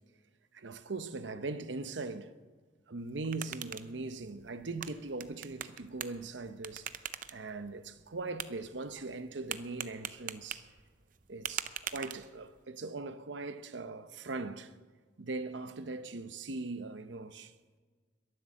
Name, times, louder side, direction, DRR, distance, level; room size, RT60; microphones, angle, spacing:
voice 1, 0.5-2.3 2.9-7.0 7.3-10.6 11.3-14.7 15.2-17.5, right 3 dB, 75° right, 0.8 m, -40 dB
Tapping on Hard Plastic, 3.0-12.6, right 9 dB, 45° right, 0.6 m, -44 dB
21.5 x 8.0 x 7.5 m
head